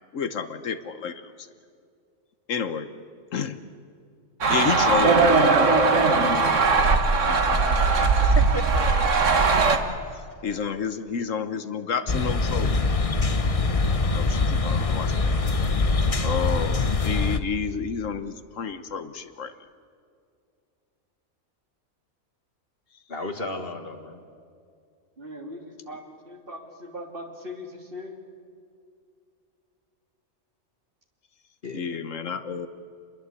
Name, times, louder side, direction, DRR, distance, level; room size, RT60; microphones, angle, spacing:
voice 1, 0.1-1.5 2.5-2.9 3.3-3.6 4.5-6.0 6.3-7.7 10.4-12.8 14.1-15.5 16.2-19.5 31.7-32.7, left 6 dB, 70° left, 10 dB, 1.4 m, -30 dB
sound 1, 4.4-9.8, right 4 dB, 65° right, 2.0 m, -19 dB
voice 2, 7.1-8.1 25.2-28.1, equal, 40° right, 2 dB, 3.2 m, -39 dB
voice 3, 8.2-8.9 23.1-24.2 31.6-32.0, left 1 dB, 45° left, 6 dB, 2.0 m, -34 dB
sound 2, 12.1-17.4, left 3 dB, 30° left, 0.9 m, -23 dB
27.5 x 21.5 x 8.3 m, 2.3 s
omnidirectional pair, 1.4 m